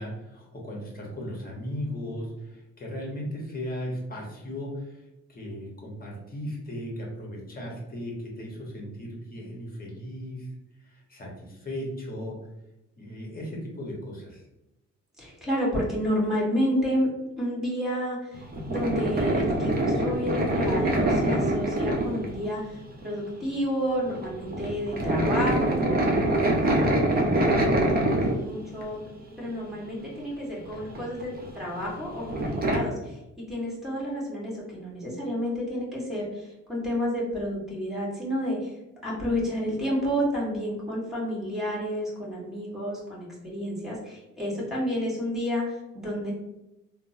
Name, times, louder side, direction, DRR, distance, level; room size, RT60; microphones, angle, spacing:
voice 1, 0.0-5.0 5.3-10.5 10.9-12.3 13.0-14.4 26.6-27.0, equal, 30° left, -2 dB, 1.0 m, -36 dB
voice 2, 15.2-17.1 17.4-26.1 26.6-29.0 29.4-33.2 33.5-38.7 39.0-46.3, equal, ahead, -5 dB, 1.3 m, -30 dB
sound 1, 18.3-23.1 23.4-23.6 23.9-29.1 29.5-29.6 30.6-32.8, right 1 dB, 30° right, 0.6 m, -25 dB
3.5 x 2.0 x 2.6 m, 0.95 s
cardioid pair, 90°, 30 cm